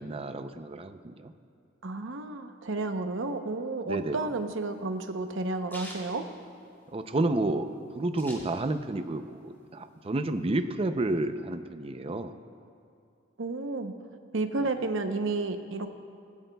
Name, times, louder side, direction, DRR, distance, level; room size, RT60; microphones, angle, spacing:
voice 1, 0.0-1.3 3.8-4.2 6.9-7.7 7.9-12.3 14.6-14.7, right 2 dB, 30° right, 9 dB, 0.5 m, -30 dB
voice 2, 1.8-6.3 13.4-14.0 14.3-15.9, right 3 dB, 65° right, 7 dB, 0.8 m, -31 dB
sound 1, 4.0-7.1 7.5-7.6 7.7-9.0 9.4-10.5, left 1 dB, 10° left, 2.7 m, -47 dB
19.0 x 15.5 x 2.3 m, 2.5 s
head